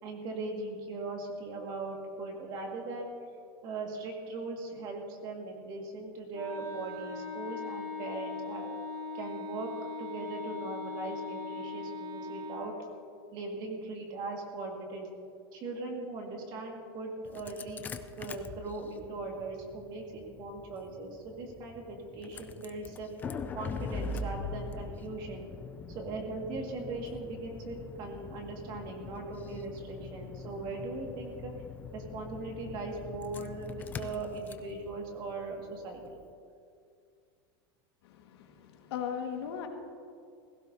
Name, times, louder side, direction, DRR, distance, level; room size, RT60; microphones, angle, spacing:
voice 1, 0.0-3.1 3.6-8.7 9.1-9.7 10.0-12.7 13.3-15.1 15.5-17.9 18.2-23.1 23.5-25.5 25.9-31.5 31.9-36.0, right 3 dB, 35° right, 1 dB, 1.9 m, -39 dB
Wind instrument woodwind instrument, 6.3-12.7, left 3 dB, 65° right, 2.4 m, -40 dB
Engine starting, 17.2-36.2, left 4 dB, 15° left, 0.4 m, -43 dB
voice 2, 38.0-39.7, left 8 dB, 90° left, 3 dB, 1.7 m, -38 dB
18.0 x 16.5 x 2.8 m, 2.4 s
supercardioid pair, 170°, 13 cm